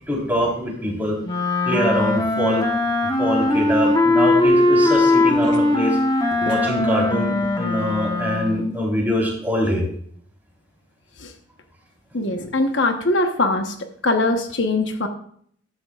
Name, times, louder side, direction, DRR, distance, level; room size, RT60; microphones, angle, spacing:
voice 1, 0.1-1.2 1.6-2.6 3.2-6.0 6.4-9.8, equal, 10° right, -2 dB, 4.0 m, -23 dB
Wind instrument woodwind instrument, 1.2-8.6, left 2 dB, 20° left, 1.2 m, -20 dB
voice 2, 12.1-13.7 14.0-15.1, left 2 dB, 65° left, 5 dB, 1.2 m, -21 dB
14.5 x 12.5 x 2.5 m, 0.62 s
head